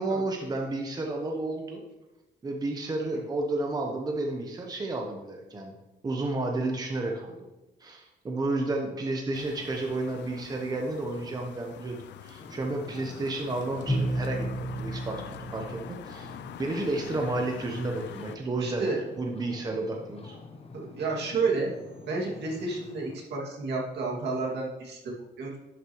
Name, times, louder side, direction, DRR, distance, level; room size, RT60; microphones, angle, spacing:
voice 1, 0.0-1.8 2.4-5.7 6.0-7.4 7.8-18.9 19.2-20.4, right 2 dB, 20° right, 2 dB, 0.8 m, -31 dB
sound 1, 9.3-18.4, left 11 dB, 75° left, 0.4 m, -45 dB
Ocean, 12.4-23.2, left 4 dB, 35° left, 0.9 m, -47 dB
Bowed string instrument, 13.9-16.7, right 1 dB, 10° left, 1.7 m, -32 dB
voice 2, 18.6-19.0 20.7-21.7 22.1-25.6, right 4 dB, 70° right, -3 dB, 2.2 m, -31 dB
11.0 x 6.4 x 3.0 m, 1.0 s
cardioid pair, 160°, 18 cm